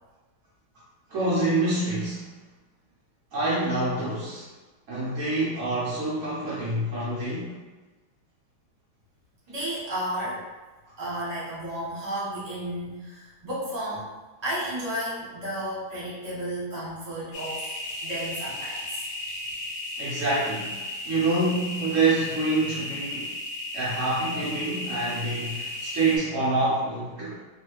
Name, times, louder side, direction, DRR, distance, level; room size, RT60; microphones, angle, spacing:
voice 1, 1.1-2.3 3.3-4.5 4.9-7.6 20.0-23.4 23.7-27.4, right 2 dB, 85° right, -8 dB, 0.6 m, -26 dB
voice 2, 9.5-10.6 11.0-14.1 14.4-17.7 18.0-18.9, right 1 dB, 30° right, -9 dB, 0.8 m, -32 dB
sound 1, 17.3-26.2, left 1 dB, 85° left, 1.5 m, -35 dB
3.1 x 2.3 x 3.0 m, 1.2 s
omnidirectional pair, 2.2 m